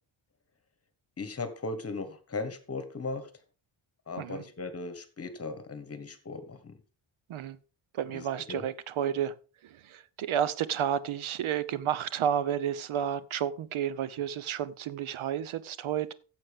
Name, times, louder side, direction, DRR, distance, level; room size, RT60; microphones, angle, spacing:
voice 1, 1.2-3.3 4.1-6.8 8.1-8.7, left 3 dB, 30° left, 1.4 m, -37 dB
voice 2, 8.0-9.3 9.9-16.1, right 9 dB, 75° right, 0.8 m, -31 dB
14.5 x 7.6 x 3.5 m
wide cardioid pair, 175°, 49 cm